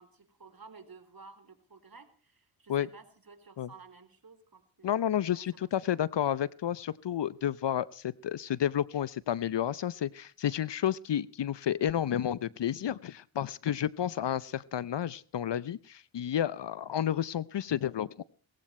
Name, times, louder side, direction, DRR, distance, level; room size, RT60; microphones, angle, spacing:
voice 1, 0.0-5.0 5.3-6.0, right 4 dB, 45° right, 9 dB, 3.7 m, -53 dB
voice 2, 4.8-18.2, left 10 dB, 55° left, 20 dB, 0.8 m, -31 dB
18.5 x 15.0 x 4.4 m, 0.40 s
supercardioid pair, 45°, 50 cm